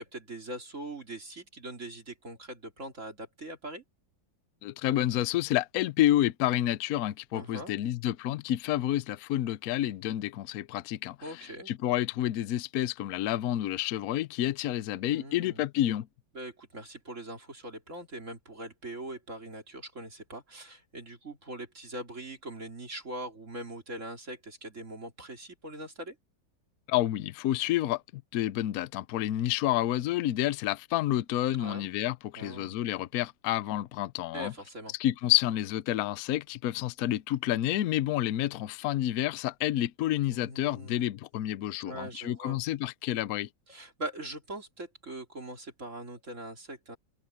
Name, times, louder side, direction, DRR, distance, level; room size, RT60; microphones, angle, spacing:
voice 1, 0.0-3.8 7.3-7.7 11.2-11.7 15.1-15.7 16.3-26.2 31.6-31.9 32.4-32.8 34.3-34.9 40.3-41.0 41.9-42.6 43.7-47.0, right 1 dB, 40° right, 3.7 m, -42 dB
voice 2, 4.6-11.2 11.7-16.1 26.9-34.5 35.0-43.5, left 13 dB, 65° left, 1.0 m, -29 dB
omnidirectional pair, 2.0 m